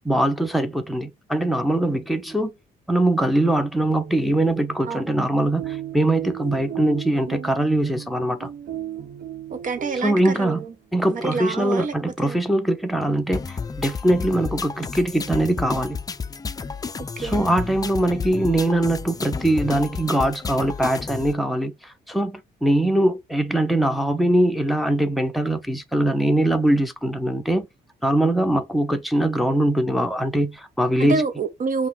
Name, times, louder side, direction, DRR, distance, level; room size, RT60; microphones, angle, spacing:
voice 1, 0.0-2.5 2.9-8.5 10.0-10.6 10.9-16.0 17.2-27.7 28.0-31.2, right 1 dB, ahead, 0.8 m, -22 dB
sound 1, 3.3-10.8, right 10 dB, 75° right, 1.0 m, -37 dB
voice 2, 4.8-5.2 9.5-10.8 11.1-11.9 12.2-12.4 17.2-17.4 31.0-31.9, right 4 dB, 50° right, 1.3 m, -27 dB
sound 2, 13.3-21.3, left 5 dB, 25° left, 0.4 m, -32 dB
5.5 x 2.2 x 4.0 m
cardioid pair, 95°, 17 cm